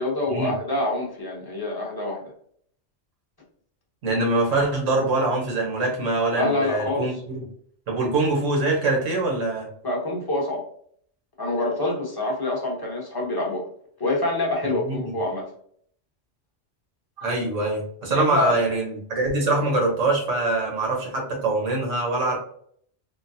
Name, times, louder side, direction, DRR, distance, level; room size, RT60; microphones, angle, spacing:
voice 1, 0.0-2.3 6.4-7.1 9.8-10.6 11.4-13.6 14.0-15.5 18.1-18.6, left 2 dB, 20° left, -3 dB, 0.8 m, -26 dB
voice 2, 4.0-7.5 7.9-9.7 14.6-15.1 17.2-22.4, right 2 dB, 90° right, -1 dB, 1.4 m, -24 dB
3.7 x 2.1 x 2.6 m, 0.62 s
omnidirectional pair, 1.2 m